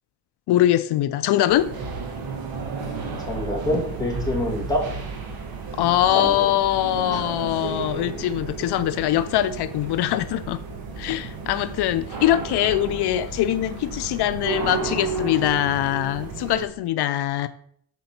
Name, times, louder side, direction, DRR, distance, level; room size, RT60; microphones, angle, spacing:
voice 1, 0.5-1.7 5.8-10.6 11.0-17.5, left 12 dB, 85° left, 0.5 m, -22 dB
sound 1, 1.5-16.7, right 4 dB, 65° right, 1.6 m, -33 dB
voice 2, 3.2-4.9 6.1-6.5 7.1-7.2 11.1-11.2, left 1 dB, 10° left, 2.1 m, -26 dB
8.3 x 3.8 x 5.8 m
wide cardioid pair, 155°, 38 cm